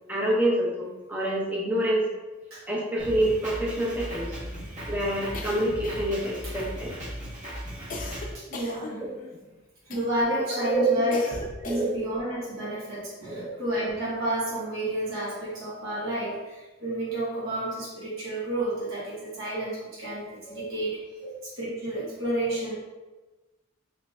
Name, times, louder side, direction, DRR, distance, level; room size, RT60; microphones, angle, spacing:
voice 1, 0.1-2.1 2.7-4.4 4.9-6.9 10.3-11.2 11.7-11.9 13.3-13.5 20.5-20.6, right 1 dB, 10° right, -4 dB, 0.6 m, -27 dB
Drum kit, 3.0-8.3, equal, 35° right, 1.1 m, -37 dB
sound 1, 5.3-6.2 6.6-7.1 7.9-9.4 9.9-10.3 11.1-12.1, left 2 dB, 40° left, 0.5 m, -39 dB
voice 2, 8.3-9.0 9.8-11.2 11.6-21.0 21.6-22.7, right 1 dB, 75° right, -9 dB, 1.3 m, -30 dB
3.1 x 2.7 x 3.2 m, 1.2 s
head